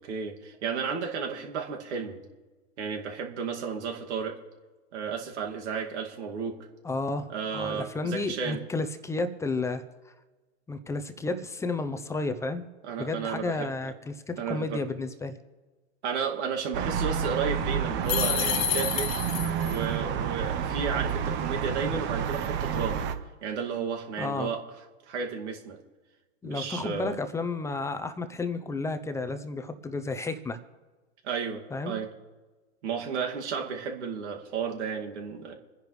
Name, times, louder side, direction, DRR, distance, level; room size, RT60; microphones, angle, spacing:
voice 1, 0.0-2.2 2.8-4.4 4.9-6.6 7.3-8.6 12.8-13.7 14.4-14.8 16.0-19.1 19.6-23.1 23.4-24.6 25.1-25.8 26.4-27.2 31.2-32.1 32.8-35.5, right 6 dB, 65° right, 2 dB, 2.3 m, -33 dB
voice 2, 6.8-7.3 7.5-10.1 10.7-12.7 13.0-15.4 24.2-24.5 26.4-30.6 31.7-32.0, left 3 dB, 10° left, 9 dB, 0.7 m, -32 dB
sound 1, 16.7-23.1, right 8 dB, 30° right, 1.0 m, -29 dB
sound 2, 18.1-19.8, left 12 dB, 55° left, 1.3 m, -29 dB
27.5 x 10.5 x 3.2 m, 1.3 s
hypercardioid pair, 125°, 36 cm